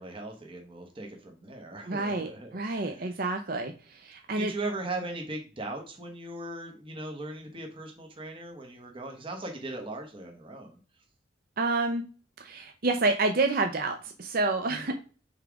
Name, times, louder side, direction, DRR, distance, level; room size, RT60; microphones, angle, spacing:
voice 1, 0.0-3.1 4.4-10.8 14.7-14.9, right 2 dB, 25° right, 2 dB, 1.1 m, -39 dB
voice 2, 1.9-4.5 11.6-12.0 12.4-14.9, right 3 dB, 50° right, 5 dB, 0.6 m, -28 dB
5.7 x 3.5 x 4.7 m, 0.37 s
head